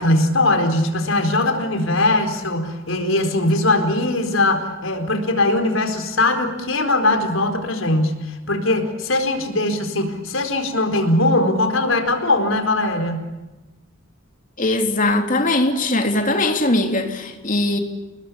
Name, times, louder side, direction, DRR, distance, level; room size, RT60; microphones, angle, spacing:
voice 1, 0.0-13.3, left 2 dB, 75° left, 4.3 m, -20 dB
voice 2, 14.6-17.8, left 2 dB, 40° left, 3.3 m, -20 dB
29.0 x 20.5 x 8.6 m
head